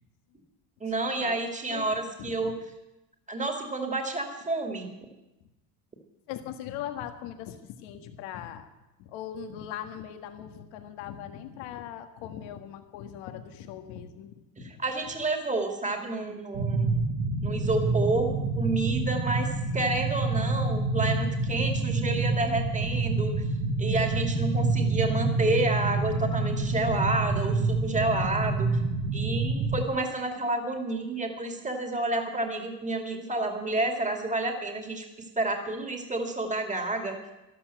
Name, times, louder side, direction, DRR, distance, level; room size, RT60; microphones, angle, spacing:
voice 1, 0.8-2.6 3.3-4.9 14.6-16.9 17.4-23.4 23.8-28.8 29.1-35.1 35.4-37.2, right 2 dB, 15° right, 4 dB, 2.4 m, -29 dB
voice 2, 6.3-8.7 9.0-14.7, left 10 dB, 80° left, 7 dB, 1.8 m, -40 dB
sound 1, 16.5-29.9, right 3 dB, 65° right, 2.2 m, -27 dB
13.0 x 12.0 x 7.9 m, 0.99 s
cardioid pair, 120°, 47 cm